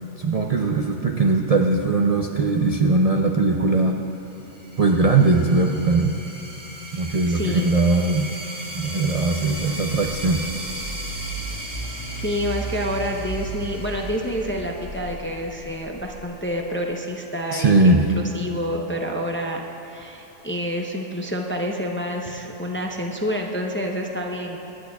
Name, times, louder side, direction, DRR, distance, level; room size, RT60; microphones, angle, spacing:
voice 1, 0.2-4.0 4.8-6.2 6.9-8.3 8.7-10.4 17.5-18.0, right 3 dB, 45° right, 2 dB, 0.5 m, -20 dB
sound 1, 4.3-15.6, right 1 dB, 15° right, 1.1 m, -37 dB
voice 2, 6.9-7.8 11.7-24.6, equal, 15° left, 1 dB, 0.5 m, -28 dB
sound 2, 9.8-16.7, right 2 dB, 75° right, 1.4 m, -35 dB
24.5 x 10.5 x 2.3 m, 2.9 s
omnidirectional pair, 1.3 m